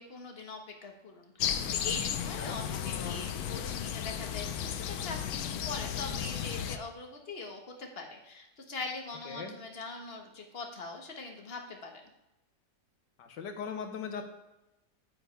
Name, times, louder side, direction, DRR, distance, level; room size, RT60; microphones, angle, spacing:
voice 1, 0.0-12.0, left 3 dB, 40° left, 2 dB, 1.5 m, -42 dB
sound 1, 1.4-6.8, left 9 dB, 70° left, 1.1 m, -34 dB
voice 2, 13.2-14.2, left 6 dB, 90° left, 5 dB, 1.8 m, -39 dB
9.2 x 8.7 x 3.4 m, 0.97 s
omnidirectional pair, 1.8 m